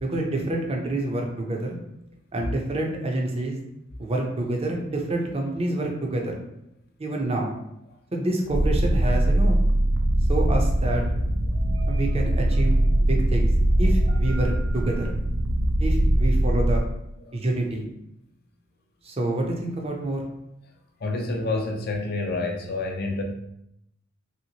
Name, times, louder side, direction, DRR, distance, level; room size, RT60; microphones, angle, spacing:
voice 1, 0.0-1.8 2.3-3.6 4.0-6.4 7.0-7.5 8.1-9.6 10.3-11.0 11.9-13.5 13.8-15.1 15.8-16.8 17.3-17.9 19.0-20.3, right 2 dB, 30° right, 1 dB, 0.6 m, -27 dB
sound 1, 8.5-16.8, right 1 dB, 80° right, 0.4 m, -21 dB
voice 2, 21.0-23.2, left 2 dB, 55° left, 3 dB, 0.5 m, -28 dB
3.0 x 2.9 x 2.8 m, 0.79 s
head